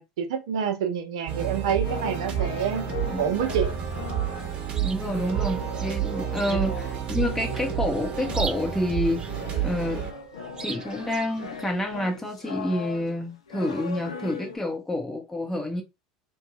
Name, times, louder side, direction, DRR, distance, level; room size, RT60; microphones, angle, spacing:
voice 1, 0.0-2.9 3.2-3.7 6.5-6.7, right 7 dB, 70° right, 0.6 m, -28 dB
sound 1, 1.3-11.4, right 10 dB, 40° right, 0.8 m, -30 dB
sound 2, 1.8-14.6, left 5 dB, 80° left, 0.5 m, -39 dB
Chirp tweet, 4.4-12.0, right 4 dB, 25° right, 0.4 m, -42 dB
voice 2, 4.8-10.0 10.6-15.8, left 1 dB, 10° left, 0.6 m, -28 dB
2.6 x 2.2 x 2.9 m
hypercardioid pair, 75°, 3 cm